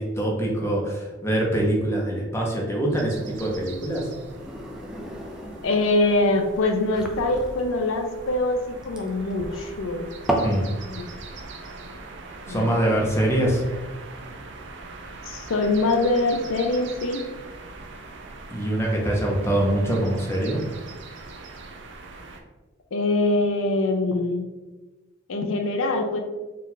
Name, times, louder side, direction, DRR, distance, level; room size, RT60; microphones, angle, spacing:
voice 1, 0.0-4.1 10.4-10.7 12.5-13.6 18.5-20.6, right 1 dB, 15° left, -2 dB, 0.7 m, -24 dB
sound 1, 2.9-22.4, right 3 dB, 60° right, 0.5 m, -42 dB
sound 2, 4.1-10.6, right 1 dB, 5° right, 0.4 m, -33 dB
voice 2, 5.6-10.1 10.9-11.0 12.5-12.7 15.2-17.2 22.9-24.5 25.3-26.2, left 2 dB, 75° left, 5 dB, 0.5 m, -23 dB
4.3 x 2.4 x 3.9 m, 1.2 s
head